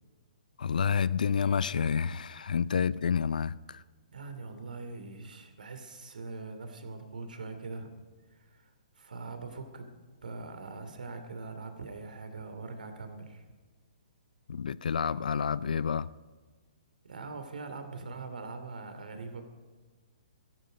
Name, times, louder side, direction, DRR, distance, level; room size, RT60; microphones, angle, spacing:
voice 1, 0.6-3.8 14.5-16.1, left 6 dB, 75° left, 0.5 m, -29 dB
voice 2, 4.1-7.9 8.3-8.7 9.0-9.9 10.2-13.4 17.0-19.4, right 3 dB, 80° right, 2.6 m, -42 dB
16.0 x 13.5 x 5.1 m
hypercardioid pair, 140°, 4 cm